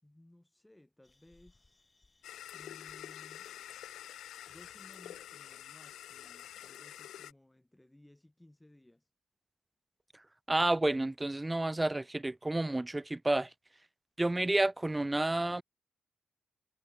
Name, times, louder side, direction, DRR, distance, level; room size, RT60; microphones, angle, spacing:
voice 1, 0.0-1.8 2.5-3.5 4.5-9.1, left 1 dB, 10° left, 4.2 m, -60 dB
sound 1, 1.0-6.7, left 2 dB, 30° left, 6.7 m, -70 dB
sound 2, 2.2-7.3, left 12 dB, 75° left, 0.7 m, -48 dB
voice 2, 10.5-13.5 14.2-15.6, right 2 dB, 20° right, 0.4 m, -30 dB
hypercardioid pair, 40°, 0 cm